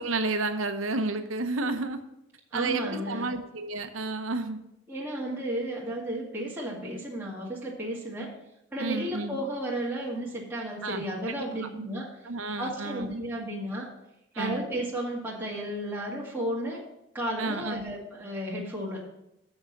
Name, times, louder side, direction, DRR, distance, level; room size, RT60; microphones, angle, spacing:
voice 1, 0.0-2.0 2.5-4.6 8.8-9.4 10.8-11.3 12.2-13.2 14.3-14.6 17.4-17.8, right 3 dB, 85° right, 8 dB, 0.9 m, -31 dB
voice 2, 2.5-3.3 4.9-8.3 8.7-12.2 12.6-13.9 14.4-16.8 17.1-19.0, right 1 dB, 10° right, -6 dB, 1.9 m, -33 dB
7.0 x 6.1 x 6.6 m, 0.85 s
head